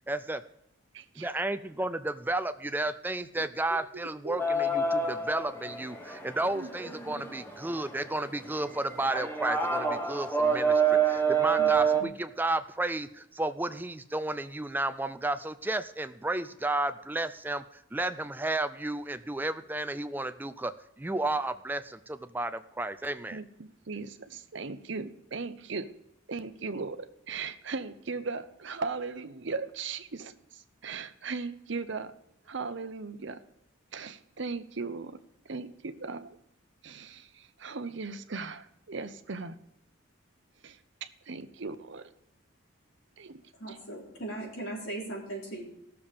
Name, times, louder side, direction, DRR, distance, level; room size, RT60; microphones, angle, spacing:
voice 1, 0.1-0.4 1.2-17.6 17.9-20.7 21.0-23.4, right 2 dB, 10° right, 11 dB, 0.4 m, -32 dB
voice 2, 0.9-1.5 3.4-3.8 4.2-4.4 6.5-6.7 11.6-11.7 12.0-12.1 23.3-25.9 26.3-32.1 32.5-33.4 33.9-35.2 35.5-36.4 36.8-39.6 40.6-42.1 43.2-43.4 43.7-43.8, right 4 dB, 60° right, 10 dB, 0.7 m, -38 dB
sound 1, 4.4-12.0, right 5 dB, 10° left, 1.1 m, -28 dB
voice 3, 43.6-45.6, right 2 dB, 70° left, -2 dB, 3.7 m, -38 dB
17.0 x 7.0 x 5.1 m, 0.83 s
head